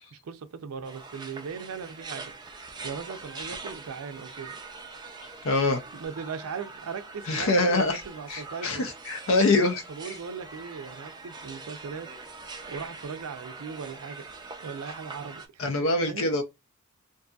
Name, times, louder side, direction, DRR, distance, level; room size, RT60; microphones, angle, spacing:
voice 1, 0.1-2.3 2.8-4.6 5.9-8.9 9.5-12.1 12.7-14.3 14.6-15.7 16.0-16.3, right 6 dB, 85° right, 0.4 m, -38 dB
sound 1, 0.9-15.5, right 3 dB, 20° right, 0.4 m, -43 dB
voice 2, 5.4-5.8 7.3-8.0 8.3-9.8 15.6-16.4, left 2 dB, 65° left, 0.5 m, -24 dB
2.6 x 2.6 x 2.3 m
head